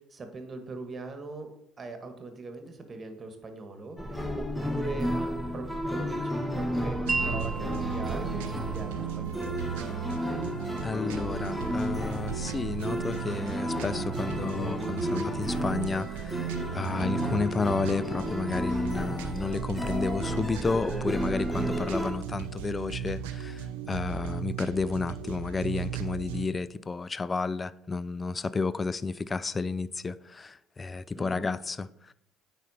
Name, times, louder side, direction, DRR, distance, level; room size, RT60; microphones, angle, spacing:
voice 1, 0.1-1.5 1.8-4.0 4.4-9.6 31.1-31.5, right 2 dB, 35° right, 1.5 m, -40 dB
sound 1, 4.0-22.1, equal, 5° left, 1.1 m, -33 dB
sound 2, 7.0-26.5, right 9 dB, 80° right, 0.5 m, -36 dB
Wind chime, 7.1-13.2, right 3 dB, 15° right, 0.6 m, -39 dB
voice 2, 10.8-32.1, left 4 dB, 25° left, 0.4 m, -31 dB
9.0 x 4.1 x 4.2 m
hypercardioid pair, 60°, 0 cm